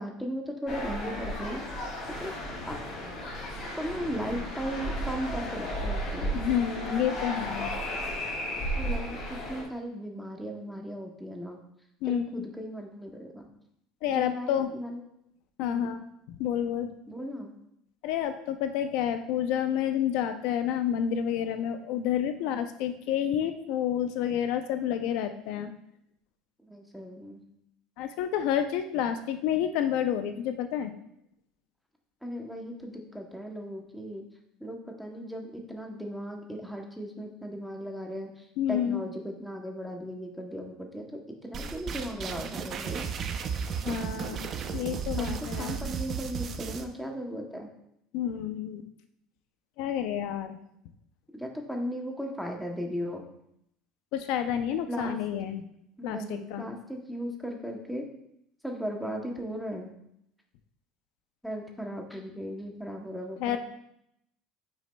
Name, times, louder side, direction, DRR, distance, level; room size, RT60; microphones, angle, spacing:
voice 1, 0.0-1.6 2.2-2.3 2.7-2.8 3.8-6.3 8.8-11.6 12.1-13.5 14.1-15.0 15.6-15.9 17.1-17.5 22.4-22.6 26.6-27.4 32.2-34.2 34.6-43.0 45.1-47.7 51.3-53.2 54.9-55.1 56.0-58.0 58.6-59.9 61.4-63.6, equal, ahead, 1 dB, 0.8 m, -37 dB
sound 1, 0.7-9.6, equal, 30° left, 2.3 m, -34 dB
voice 2, 6.3-7.7 12.0-12.5 14.0-14.7 15.6-16.9 18.0-25.7 28.0-30.9 38.6-39.0 43.8-45.8 48.1-48.8 49.8-50.6 54.1-55.6 56.0-56.7 63.4-63.6, left 9 dB, 60° left, 8 dB, 0.5 m, -29 dB
sound 2, 41.5-46.8, right 6 dB, 30° right, 0.5 m, -34 dB
9.2 x 6.1 x 2.2 m, 0.76 s
cardioid pair, 170°, 0 cm